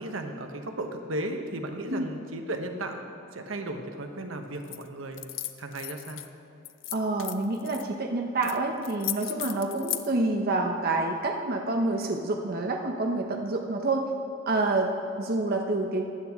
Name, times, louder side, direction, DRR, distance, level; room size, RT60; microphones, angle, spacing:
voice 1, 0.0-3.0 3.3-5.2 5.6-6.2, right 1 dB, 80° right, 5 dB, 1.1 m, -35 dB
sound 1, 4.6-4.8 5.1-6.3 6.6-7.8 8.4-8.6 8.8-10.1, left 14 dB, 65° left, 0.5 m, -35 dB
voice 2, 6.9-14.1 14.5-16.1, right 2 dB, 50° right, 2 dB, 0.8 m, -28 dB
15.0 x 11.0 x 3.6 m, 2.8 s
head